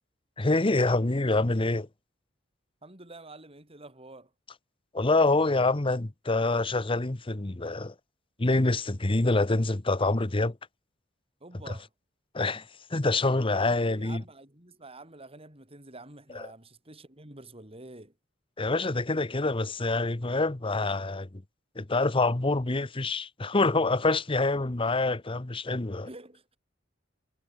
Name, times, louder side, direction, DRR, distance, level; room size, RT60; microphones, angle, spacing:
voice 1, 0.4-1.9 4.9-7.9 8.4-10.6 12.3-12.6 12.9-14.2 16.3-16.4 18.6-21.4 21.8-26.1, left 2 dB, 30° left, 1.0 m, -26 dB
voice 2, 2.8-4.3 11.4-11.9 13.8-18.1 26.0-26.4, right 2 dB, 30° right, 7.0 m, -48 dB
head